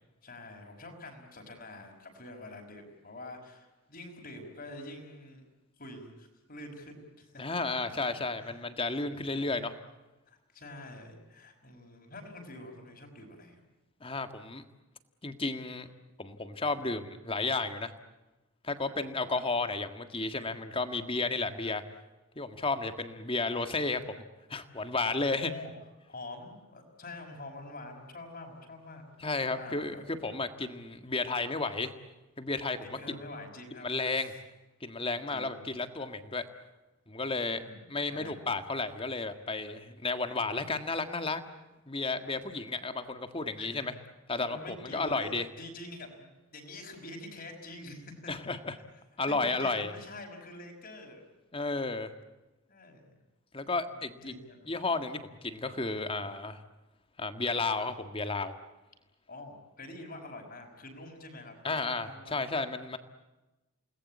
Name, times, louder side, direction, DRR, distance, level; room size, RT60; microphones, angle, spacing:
voice 1, 0.2-5.5 5.8-7.4 7.9-8.7 9.3-9.6 10.3-13.6 25.1-25.7 26.1-30.1 32.8-34.4 35.3-35.7 37.5-38.5 43.6-44.1 44.4-48.3 49.3-51.2 52.7-53.2 53.9-54.7 59.3-62.4, left 2 dB, 40° left, 3 dB, 5.5 m, -47 dB
voice 2, 7.4-9.7 14.0-14.6 15.2-15.9 16.2-17.9 18.6-21.8 22.3-24.2 24.5-25.5 29.2-31.9 32.4-32.8 33.8-34.3 34.8-36.4 37.1-37.6 37.9-41.4 41.9-43.9 44.3-45.4 48.3-48.7 49.2-49.9 51.5-52.1 53.5-54.3 54.7-56.6 57.2-58.5 61.6-63.0, left 3 dB, 25° left, 9 dB, 1.7 m, -32 dB
29.0 x 20.0 x 8.6 m, 1.1 s
head